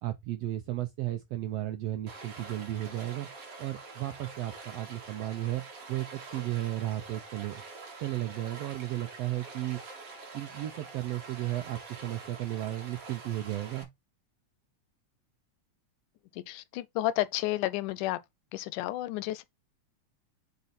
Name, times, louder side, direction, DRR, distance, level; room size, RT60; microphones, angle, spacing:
voice 1, 0.0-3.3 3.6-5.6 5.9-7.6 8.0-9.8 10.3-13.9, right 15 dB, 80° right, 1.4 m, -34 dB
Stream, 2.1-13.8, right 3 dB, 50° right, 2.7 m, -46 dB
voice 2, 16.3-18.2 18.5-19.4, left 15 dB, 90° left, 2.2 m, -31 dB
7.0 x 4.4 x 4.1 m
omnidirectional pair, 3.5 m